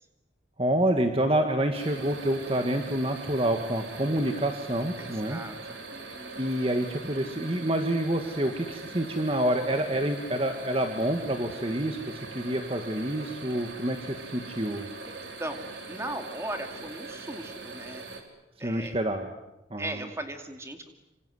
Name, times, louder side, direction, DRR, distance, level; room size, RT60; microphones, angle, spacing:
voice 1, 0.6-5.4 6.4-14.9 18.6-19.3 19.7-20.1, right 1 dB, 30° right, 5 dB, 1.8 m, -28 dB
sound 1, 1.7-18.2, right 3 dB, 85° right, 3.8 m, -42 dB
voice 2, 5.0-6.4 15.0-18.1 18.6-19.0 19.8-20.9, right 1 dB, 15° right, 5 dB, 2.5 m, -38 dB
27.0 x 26.5 x 7.9 m, 0.94 s
head